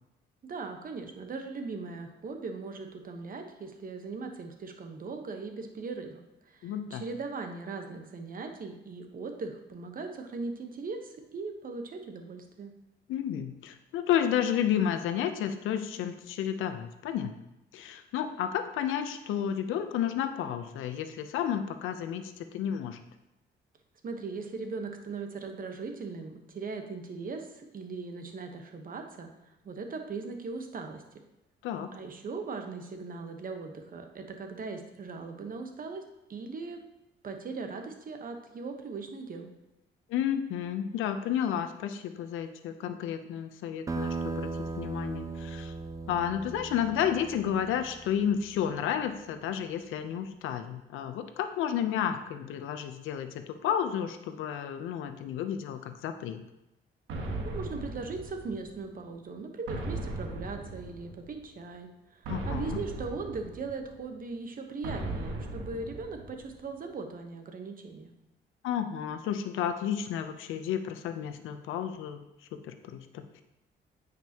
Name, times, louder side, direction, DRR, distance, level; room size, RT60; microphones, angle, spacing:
voice 1, 0.5-6.2 6.5-12.7 24.0-29.3 29.6-31.0 31.9-36.0 36.3-36.8 37.2-39.5 57.4-68.1, right 4 dB, 45° right, 5 dB, 1.1 m, -39 dB
voice 2, 6.6-7.0 13.1-17.3 17.7-23.0 31.6-31.9 40.1-44.5 44.8-45.7 46.1-56.4 62.3-62.8 68.6-72.2 72.6-73.4, left 9 dB, 90° left, 9 dB, 0.6 m, -31 dB
sound 1, 43.9-49.0, right 4 dB, 15° right, 0.5 m, -38 dB
sound 2, 57.1-58.9 59.7-61.4 62.2-64.0 64.8-66.6, right 2 dB, 90° right, 1.3 m, -37 dB
9.2 x 5.2 x 2.9 m, 0.90 s
cardioid pair, 90°, 20 cm